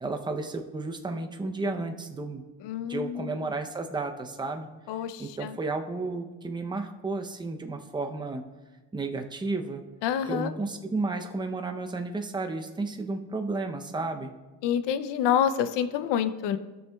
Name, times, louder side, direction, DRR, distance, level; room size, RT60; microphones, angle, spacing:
voice 1, 0.0-2.4 2.8-4.7 5.2-8.5 8.9-9.8 10.3-14.3, right 3 dB, 10° right, 5 dB, 0.6 m, -32 dB
voice 2, 2.6-3.4 4.9-5.6 10.0-10.5 14.6-16.6, left 9 dB, 80° left, 12 dB, 0.6 m, -27 dB
15.5 x 6.4 x 2.3 m, 1.2 s
cardioid pair, 120°, 41 cm